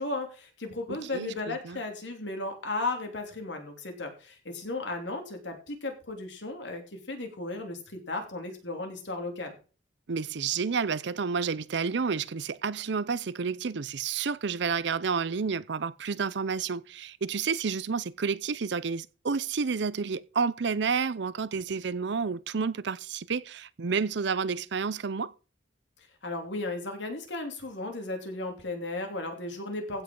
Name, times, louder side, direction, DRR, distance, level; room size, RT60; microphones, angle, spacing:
voice 1, 0.0-9.5 26.2-30.0, left 2 dB, 70° left, 3.1 m, -35 dB
voice 2, 0.9-1.8 10.1-25.3, right 5 dB, 65° right, 0.6 m, -30 dB
15.5 x 5.4 x 5.4 m
head